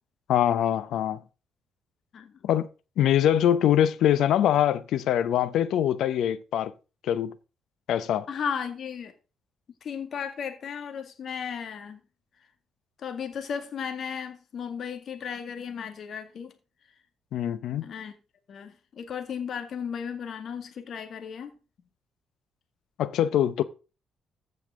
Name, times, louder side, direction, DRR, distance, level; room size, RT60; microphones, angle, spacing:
voice 1, 0.3-1.2 2.4-2.7 3.0-6.7 7.0-7.3 7.9-8.3 17.3-17.9 23.0-23.6, left 10 dB, 80° left, 0.7 m, -23 dB
voice 2, 8.3-9.1 9.8-12.0 13.0-16.5 17.8-18.2 18.5-21.5, left 7 dB, 60° left, 2.0 m, -35 dB
15.0 x 5.4 x 3.7 m
cardioid pair, 90°, 0 cm